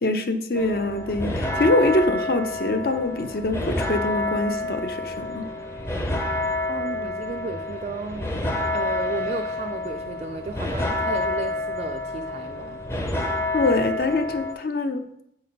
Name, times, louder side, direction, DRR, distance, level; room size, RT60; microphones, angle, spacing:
voice 1, 0.0-5.5 13.5-15.1, left 2 dB, 55° left, 8 dB, 0.6 m, -24 dB
sound 1, 0.6-14.5, left 2 dB, 15° left, 0.6 m, -28 dB
voice 2, 6.7-8.3 8.7-12.8, right 3 dB, 35° right, 4 dB, 0.3 m, -33 dB
7.7 x 4.1 x 5.3 m, 0.76 s
head